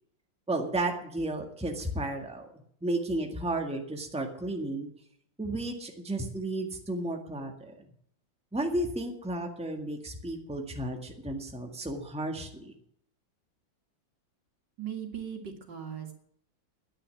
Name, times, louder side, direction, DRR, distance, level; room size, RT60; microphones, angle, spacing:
voice 1, 0.5-2.5 2.8-4.9 5.4-7.9 8.5-12.7, right 1 dB, 5° right, 2 dB, 1.7 m, -33 dB
voice 2, 14.8-16.1, right 9 dB, 65° right, 4 dB, 2.6 m, -38 dB
10.0 x 10.0 x 9.0 m, 0.69 s
omnidirectional pair, 2.0 m